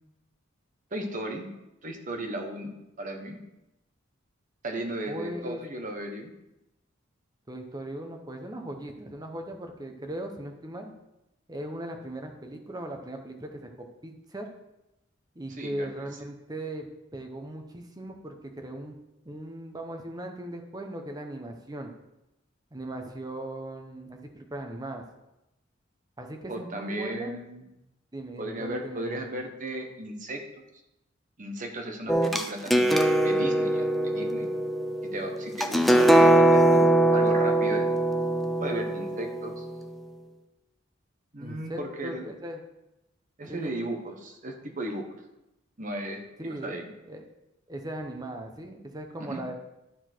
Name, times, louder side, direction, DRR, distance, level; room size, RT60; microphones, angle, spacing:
voice 1, 0.9-1.5 1.8-3.4 4.6-6.3 15.6-15.9 26.5-27.7 28.4-30.4 31.4-34.5 35.1-36.8 37.1-37.9 38.6-39.6 41.3-42.2 43.4-45.0 45.8-46.9 49.2-49.4, right 1 dB, 40° right, 3 dB, 1.2 m, -35 dB
voice 2, 5.1-5.6 7.5-10.9 11.5-14.5 15.3-19.0 19.2-21.9 22.7-25.0 26.2-27.3 28.1-29.2 41.4-42.6 43.4-43.8 46.4-46.8 47.1-47.2 47.7-49.5, right 1 dB, 20° right, 4 dB, 0.9 m, -38 dB
sound 1, 32.1-39.8, right 1 dB, ahead, 0.4 m, -22 dB
11.5 x 4.4 x 4.5 m, 0.92 s
head